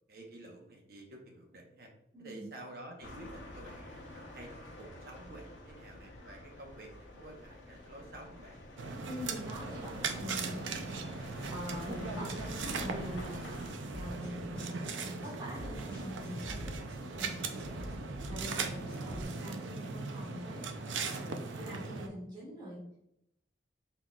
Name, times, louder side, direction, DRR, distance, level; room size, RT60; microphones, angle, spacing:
voice 1, 0.1-1.9 2.2-8.6 17.5-17.8, right 1 dB, 50° right, 1 dB, 0.9 m, -50 dB
voice 2, 2.1-2.5 9.1-10.8 11.5-13.3 13.9-17.6 18.3-21.3 21.6-22.8, equal, 25° right, -8 dB, 1.4 m, -44 dB
sound 1, 3.0-13.7, left 1 dB, 85° left, 0.8 m, -48 dB
sound 2, 8.8-22.1, right 4 dB, 80° right, 0.5 m, -39 dB
sound 3, 13.9-19.2, equal, 5° left, 1.3 m, -47 dB
4.4 x 3.8 x 2.3 m, 0.79 s
head